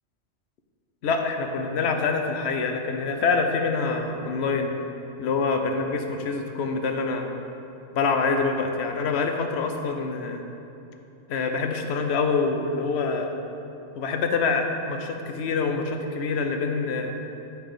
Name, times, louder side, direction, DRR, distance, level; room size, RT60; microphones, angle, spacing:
voice 1, 1.0-4.8 5.2-7.3 7.9-10.4 11.3-13.3 14.0-17.1, left 4 dB, 75° left, 4 dB, 0.9 m, -26 dB
8.0 x 4.6 x 4.9 m, 2.9 s
omnidirectional pair, 1.1 m